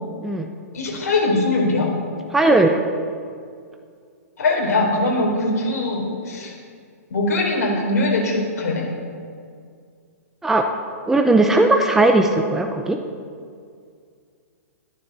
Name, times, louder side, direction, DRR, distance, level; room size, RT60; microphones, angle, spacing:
voice 1, 0.7-1.9 4.4-6.5 7.1-8.8, left 2 dB, 75° left, 0 dB, 4.2 m, -21 dB
voice 2, 2.3-2.8 10.4-10.7 11.1-13.0, right 2 dB, 5° right, 3 dB, 0.7 m, -17 dB
12.5 x 10.0 x 6.9 m, 2.2 s
hypercardioid pair, 145°, 9 cm